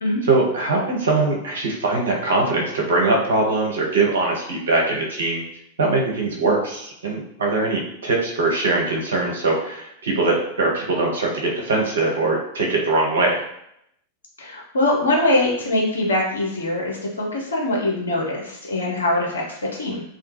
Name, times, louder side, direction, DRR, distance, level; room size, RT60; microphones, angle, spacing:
voice 1, 0.3-5.4 5.8-13.4, right 3 dB, 65° right, -1 dB, 0.6 m, -21 dB
voice 2, 14.4-20.0, left 1 dB, 70° left, -2 dB, 0.7 m, -23 dB
2.2 x 2.2 x 3.0 m, 0.76 s
figure-of-eight pair, 90°, 0 cm